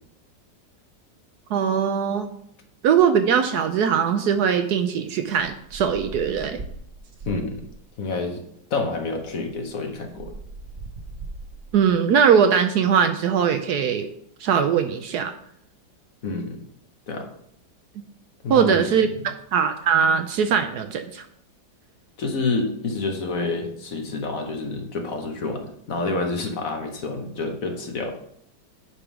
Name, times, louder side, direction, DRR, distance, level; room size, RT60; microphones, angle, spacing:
voice 1, 1.5-2.3 2.8-6.6 11.7-14.1 14.4-15.3 18.5-21.3, right 7 dB, 70° right, 8 dB, 1.0 m, -21 dB
sound 1, 5.4-7.9 8.9-9.0 9.3-11.9, right 3 dB, 90° right, 0.4 m, -40 dB
voice 2, 7.2-7.6 8.0-8.4 8.7-10.3 16.2-16.6 17.1-17.3 18.4-18.9 22.2-28.2, left 3 dB, 55° left, 4 dB, 1.2 m, -28 dB
9.8 x 3.5 x 5.8 m, 0.70 s
omnidirectional pair, 2.0 m